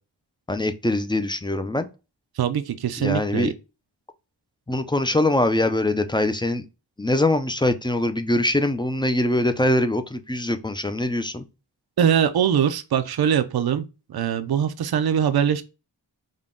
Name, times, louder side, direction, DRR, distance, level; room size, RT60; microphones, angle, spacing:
voice 1, 0.5-1.9 3.0-3.5 4.7-6.7 7.0-11.4, left 1 dB, 10° left, 0.4 m, -23 dB
voice 2, 2.4-3.5 12.0-15.6, right 8 dB, 60° right, 0.5 m, -22 dB
3.7 x 2.2 x 3.6 m
wide cardioid pair, 45°, 44 cm